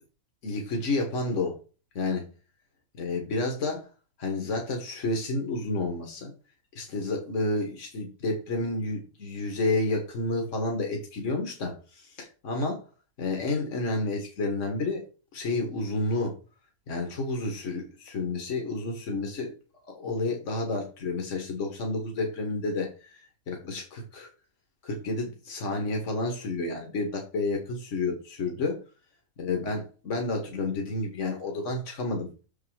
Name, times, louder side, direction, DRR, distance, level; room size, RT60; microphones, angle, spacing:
voice 1, 0.4-1.6 2.0-2.3 3.0-3.9 4.2-6.3 6.8-12.8 13.2-15.0 15.3-16.3 16.9-19.5 19.9-24.3 24.8-28.8 29.4-32.3, left 2 dB, 60° left, 2 dB, 1.9 m, -30 dB
6.6 x 4.8 x 4.8 m, 0.33 s
omnidirectional pair, 1.5 m